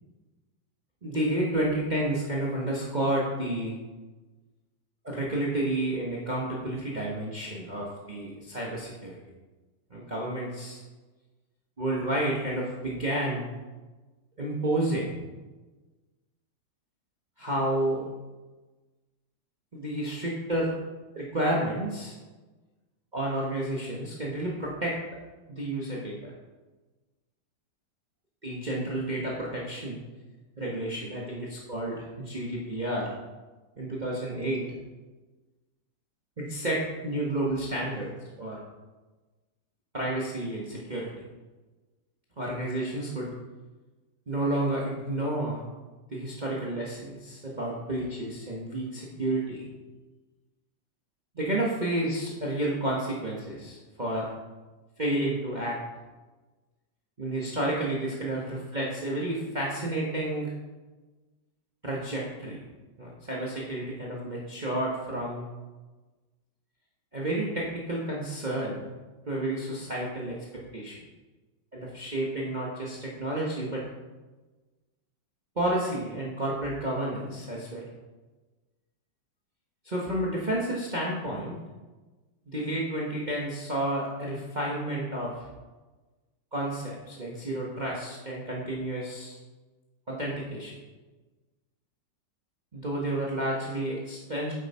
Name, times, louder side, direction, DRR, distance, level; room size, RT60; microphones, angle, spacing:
voice 1, 1.0-3.8 5.0-9.2 9.9-10.8 11.8-13.5 14.4-15.2 17.4-18.1 19.7-20.7 21.1-22.1 23.1-25.0 25.5-26.3 28.4-30.0 30.6-33.1 33.8-34.7 36.4-38.1 38.4-38.6 39.9-41.1 42.4-43.3 44.3-45.6 46.1-49.7 51.3-54.3 55.0-55.8 57.2-60.5 61.8-62.6 63.0-65.5 67.1-68.9 69.3-71.0 71.7-73.8 75.5-77.9 79.8-81.6 82.5-85.5 86.5-89.4 90.1-90.8 92.7-94.5, right 1 dB, 25° right, -4 dB, 1.3 m, -30 dB
9.3 x 8.0 x 4.3 m, 1.2 s
omnidirectional pair, 2.0 m